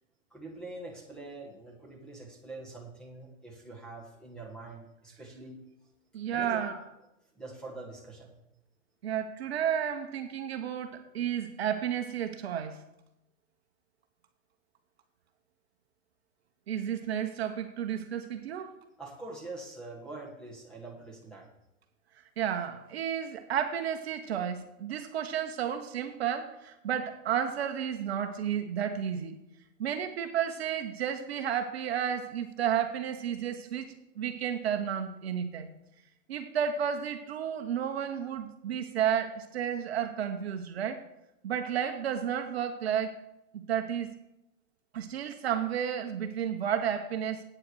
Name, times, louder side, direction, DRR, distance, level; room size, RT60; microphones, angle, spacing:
voice 1, 0.3-5.6 6.3-6.8 7.4-8.3 19.0-21.5, right 2 dB, ahead, -1 dB, 1.4 m, -44 dB
voice 2, 6.1-6.8 9.0-12.8 16.7-18.7 22.4-29.3 29.8-35.7 36.3-41.0 41.4-43.1 43.5-44.2 44.9-47.4, right 9 dB, 50° right, 7 dB, 1.0 m, -32 dB
8.7 x 7.8 x 6.3 m, 0.86 s
hypercardioid pair, 155°, 40 cm